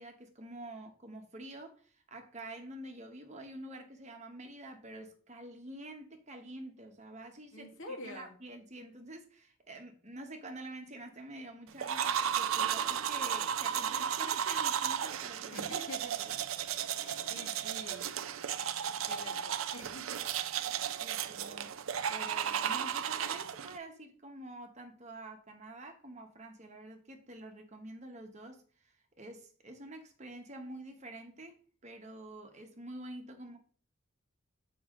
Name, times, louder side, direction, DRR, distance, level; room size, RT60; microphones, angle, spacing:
voice 1, 0.0-15.7 16.1-16.3 21.0-21.7 22.1-33.6, right 1 dB, 35° right, 1.0 m, -48 dB
voice 2, 7.5-8.3 15.5-16.1 16.9-18.1 19.1-20.2, left 1 dB, 75° left, 2.0 m, -46 dB
sound 1, 11.8-23.8, right 8 dB, 80° right, 0.5 m, -34 dB
7.1 x 5.2 x 3.7 m
head